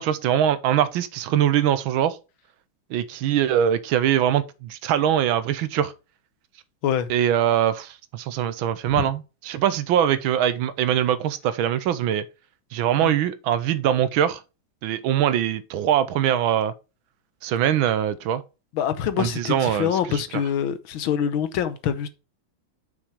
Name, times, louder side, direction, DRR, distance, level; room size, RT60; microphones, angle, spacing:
voice 1, 0.0-2.2 2.9-5.9 7.1-12.2 12.7-14.4 14.8-16.7 17.4-18.4 19.2-20.2, right 10 dB, 80° right, 1.5 m, -22 dB
voice 2, 18.7-22.1, left 9 dB, 75° left, 1.6 m, -25 dB
6.2 x 6.1 x 4.8 m
omnidirectional pair, 2.3 m